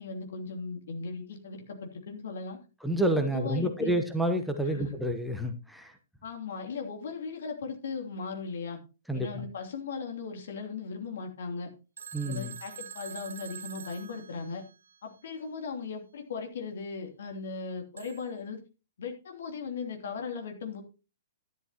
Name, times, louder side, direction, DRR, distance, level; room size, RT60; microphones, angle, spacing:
voice 1, 0.0-2.6 3.2-4.0 4.7-4.9 6.2-8.8 9.1-11.7 12.2-14.6 15.0-18.6 19.0-20.8, left 5 dB, 60° left, 3 dB, 3.0 m, -38 dB
voice 2, 2.8-5.9 9.1-9.4 12.1-12.5, right 1 dB, ahead, 4 dB, 1.1 m, -29 dB
Telephone, 12.0-15.0 18.0-18.4, right 7 dB, 70° right, 1.1 m, -45 dB
12.0 x 11.5 x 2.9 m, 0.32 s
figure-of-eight pair, 115°, 0 cm